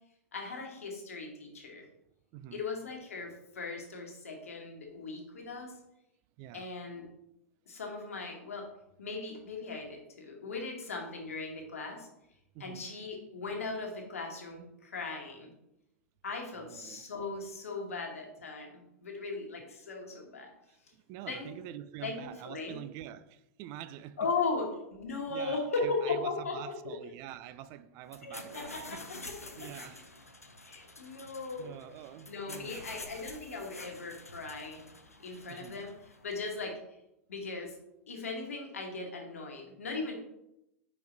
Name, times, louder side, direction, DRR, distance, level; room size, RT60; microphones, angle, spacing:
voice 1, 0.3-1.8 2.5-5.7 6.5-7.1 7.7-8.7 9.0-12.1 12.6-15.5 16.2-20.5 21.3-21.5 22.0-22.8 24.2-26.9 28.2-29.7 30.6-31.7 32.3-34.8 35.2-35.9 36.2-36.8 37.3-37.8 38.1-40.1, left 3 dB, 75° left, 1.4 m, -38 dB
voice 2, 2.3-2.6 6.4-6.7 12.5-12.9 16.5-17.0 20.7-24.3 25.3-30.1 30.7-30.8 31.2-31.3 31.6-32.8 35.5-35.8, right 12 dB, 40° right, 0.4 m, -46 dB
sound 1, 28.0-36.6, left 2 dB, 90° left, 0.6 m, -49 dB
5.3 x 4.7 x 3.9 m
figure-of-eight pair, 90°, 8 cm